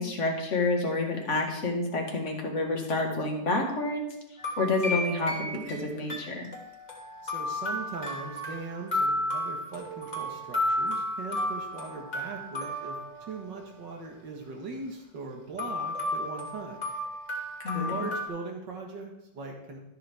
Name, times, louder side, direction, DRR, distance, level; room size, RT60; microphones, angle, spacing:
voice 1, 0.0-4.1 4.6-6.5 17.6-18.0, left 2 dB, 40° left, 1 dB, 1.9 m, -29 dB
sound 1, 4.4-13.8 15.6-18.3, left 1 dB, 25° left, 1.9 m, -33 dB
voice 2, 7.2-13.0 13.3-16.8 17.7-19.8, right 4 dB, 70° right, 2 dB, 2.2 m, -40 dB
12.5 x 7.3 x 3.6 m, 0.90 s
omnidirectional pair, 2.0 m